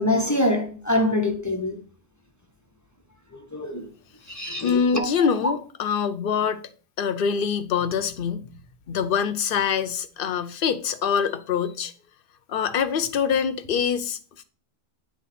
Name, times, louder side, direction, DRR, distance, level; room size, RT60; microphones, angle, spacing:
voice 1, 0.0-1.8 3.5-3.8 4.3-5.3, left 1 dB, 20° left, 0.6 m, -24 dB
voice 2, 4.6-6.6 7.0-8.5 8.9-11.9 12.5-14.4, left 7 dB, 55° left, 0.8 m, -24 dB
9.4 x 3.3 x 4.1 m
omnidirectional pair, 1.2 m